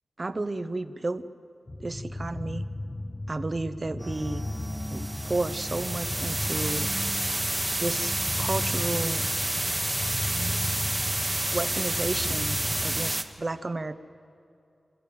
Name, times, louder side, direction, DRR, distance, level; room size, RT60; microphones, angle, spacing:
voice 1, 0.2-1.3 1.8-2.6 3.3-4.4 4.9-6.9 7.8-9.2 11.5-14.0, right 2 dB, 40° right, 12 dB, 0.8 m, -32 dB
sound 1, 1.7-13.1, left 2 dB, 35° left, 0.7 m, -36 dB
sound 2, 4.0-13.2, right 1 dB, 20° right, 1.3 m, -30 dB
27.0 x 14.5 x 8.6 m, 2.7 s
wide cardioid pair, 85°, 0 cm